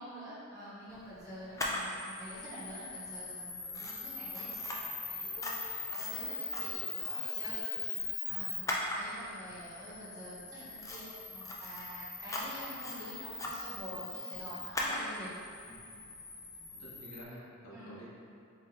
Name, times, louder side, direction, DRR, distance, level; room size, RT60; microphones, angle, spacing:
voice 1, 0.0-15.5 17.7-18.0, equal, 20° right, -10 dB, 1.0 m, -47 dB
Camera, 1.6-17.2, left 3 dB, 15° left, 0.3 m, -39 dB
voice 2, 16.4-18.0, equal, 75° left, -7 dB, 1.1 m, -50 dB
4.1 x 2.5 x 3.9 m, 2.5 s
head